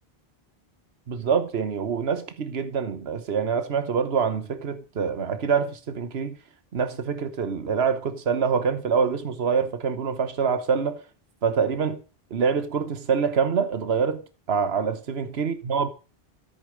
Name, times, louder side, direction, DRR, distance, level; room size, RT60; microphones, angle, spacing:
voice 1, 1.1-6.3 6.7-11.0 11.4-12.0 12.3-14.2 14.5-15.9, right 6 dB, 80° right, 1.4 m, -25 dB
14.5 x 8.3 x 6.5 m
omnidirectional pair, 1.0 m